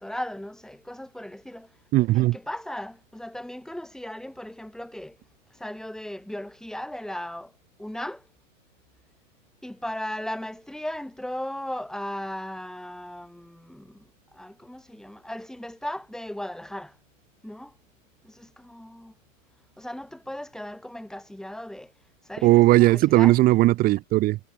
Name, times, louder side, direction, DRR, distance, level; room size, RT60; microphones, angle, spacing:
voice 1, 0.0-1.7 2.1-5.2 5.5-7.5 7.8-8.2 9.6-16.9 17.4-17.7 18.2-19.1 19.8-21.9 22.2-23.4, left 1 dB, ahead, 6.5 m, -37 dB
voice 2, 1.9-2.4 22.4-24.4, right 17 dB, 20° right, 0.8 m, -18 dB
hypercardioid pair, 120°, 40 cm